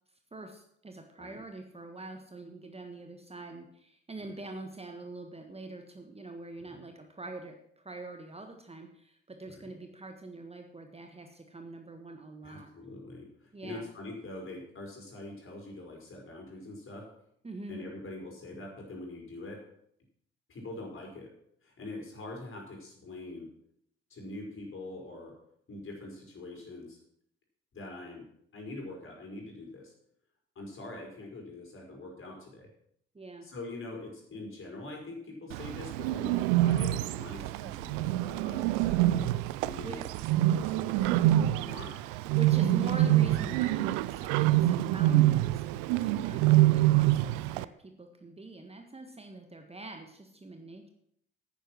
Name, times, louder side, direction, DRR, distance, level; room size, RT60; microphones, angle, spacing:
voice 1, 0.3-12.7 13.5-13.9 17.4-17.8 33.1-33.5 39.8-40.0 42.3-50.9, right 2 dB, 20° right, 5 dB, 1.5 m, -44 dB
voice 2, 12.4-17.1 17.7-19.6 20.5-21.3 21.6-23.5 24.1-25.3 25.7-27.0 27.7-28.2 28.5-29.9 30.6-32.7 33.4-39.2 39.6-40.0 40.5-42.0 42.5-42.8, left 2 dB, 40° left, 0 dB, 5.1 m, -44 dB
Bird, 35.5-47.7, right 15 dB, 65° right, 0.5 m, -26 dB
10.0 x 9.6 x 6.1 m, 0.71 s
figure-of-eight pair, 45°, 32 cm